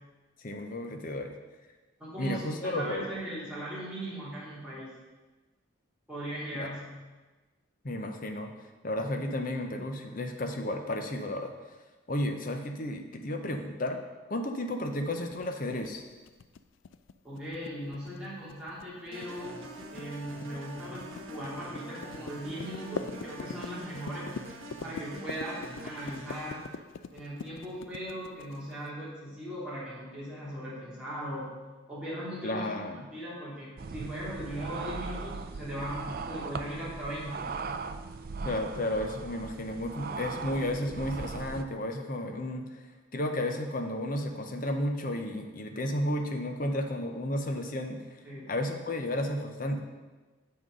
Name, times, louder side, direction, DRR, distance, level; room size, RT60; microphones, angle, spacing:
voice 1, 0.4-1.4 2.2-3.2 6.5-6.7 7.8-8.5 8.8-11.5 12.1-14.0 14.3-16.0 32.4-33.1 38.4-42.8 43.1-48.0 48.5-49.8, left 1 dB, 40° left, 5 dB, 0.8 m, -32 dB
voice 2, 2.0-4.9 6.1-6.9 17.2-19.6 19.9-24.3 24.8-26.7 27.1-31.5 31.9-32.7 33.1-37.5 48.2-48.6, equal, 5° right, -10 dB, 3.0 m, -39 dB
sound 1, 15.1-28.9, left 5 dB, 65° left, 0.4 m, -43 dB
sound 2, 19.1-26.7, right 1 dB, 75° right, 1.2 m, -44 dB
sound 3, 33.8-41.6, right 4 dB, 45° right, 0.4 m, -39 dB
7.2 x 6.3 x 5.3 m, 1.2 s
head